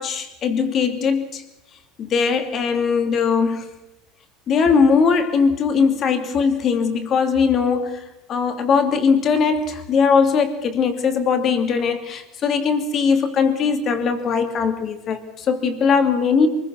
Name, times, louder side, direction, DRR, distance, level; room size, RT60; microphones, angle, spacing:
voice 1, 0.0-1.4 2.0-3.7 4.5-8.0 8.3-16.5, left 5 dB, 35° left, 7 dB, 2.8 m, -20 dB
23.5 x 21.5 x 6.4 m, 0.94 s
supercardioid pair, 135°, 0 cm